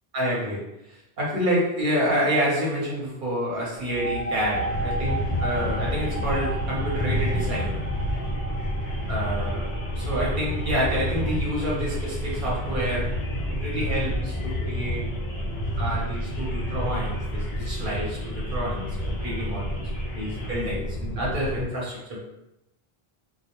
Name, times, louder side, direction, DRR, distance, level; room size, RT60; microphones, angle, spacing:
voice 1, 0.1-7.8 9.1-13.1 13.5-15.0 15.8-19.8 20.1-22.2, equal, 55° right, -5 dB, 1.0 m, -28 dB
sound 1, 3.8-11.2, right 2 dB, 80° right, 0.9 m, -35 dB
sound 2, 4.3-20.6, left 1 dB, 75° left, 0.9 m, -42 dB
sound 3, 4.7-21.6, equal, 50° left, 0.6 m, -29 dB
2.3 x 2.1 x 2.9 m, 0.88 s
omnidirectional pair, 1.0 m